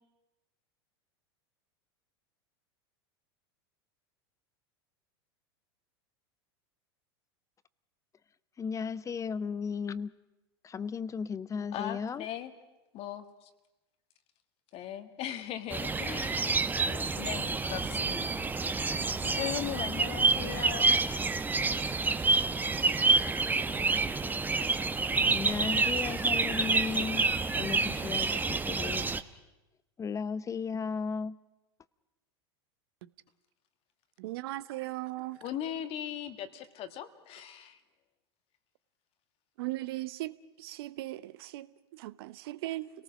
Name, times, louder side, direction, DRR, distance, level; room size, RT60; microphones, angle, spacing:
voice 1, 8.6-10.1 10.6-12.3 25.2-29.1 30.0-31.4, left 6 dB, 25° left, 18 dB, 0.7 m, -35 dB
voice 2, 11.7-12.5 12.9-13.2 14.7-16.5 16.8-18.3 19.2-21.0 35.4-37.7, left 10 dB, 45° left, 8 dB, 1.7 m, -38 dB
sound 1, 15.7-29.2, right 3 dB, 15° right, 1.0 m, -28 dB
voice 3, 34.2-35.4 39.6-42.9, right 17 dB, 65° right, 16 dB, 0.9 m, -38 dB
29.5 x 18.5 x 6.3 m, 1.0 s
hypercardioid pair, 90°, 14 cm